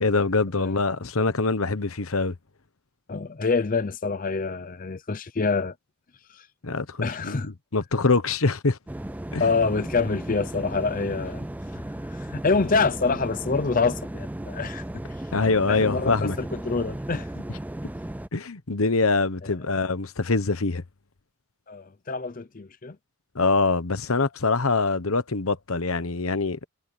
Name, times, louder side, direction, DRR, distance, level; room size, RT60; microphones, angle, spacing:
voice 1, 0.0-2.3 6.6-8.8 9.3-9.4 15.3-16.4 18.3-20.8 23.3-26.7, left 3 dB, 70° left, 1.1 m, -24 dB
voice 2, 3.1-5.7 6.3-6.5 7.0-7.5 9.4-11.4 11.7-11.8 12.1-14.8 15.3-17.4 19.4-19.5 21.7-23.0, left 4 dB, 35° left, 0.6 m, -26 dB
sound 1, 8.9-18.3, right 1 dB, 5° right, 0.3 m, -35 dB
head